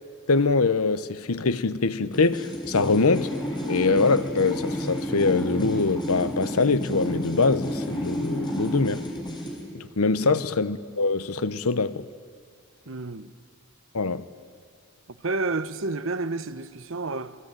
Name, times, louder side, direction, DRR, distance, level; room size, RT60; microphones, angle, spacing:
voice 1, 0.3-3.3 3.7-9.0 9.7-12.1 13.9-14.2, left 3 dB, 90° left, 1.0 m, -23 dB
sound 1, 2.1-9.6, equal, 20° left, 4.7 m, -31 dB
voice 2, 12.9-13.3 15.1-17.4, right 3 dB, 65° right, 1.0 m, -30 dB
28.0 x 22.0 x 9.1 m
head